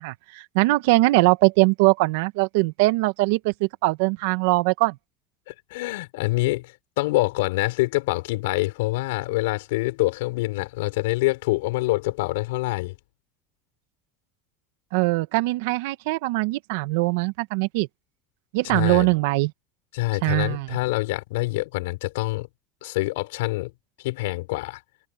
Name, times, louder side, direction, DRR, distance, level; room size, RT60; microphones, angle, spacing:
voice 1, 0.0-5.0 14.9-17.9 18.5-19.5 20.2-20.7, right 23 dB, 80° right, 1.7 m, -21 dB
voice 2, 5.5-12.9 18.6-19.1 19.9-22.5 22.8-23.7 24.0-24.8, left 21 dB, 85° left, 5.6 m, -26 dB
open air
supercardioid pair, 100°, 0 cm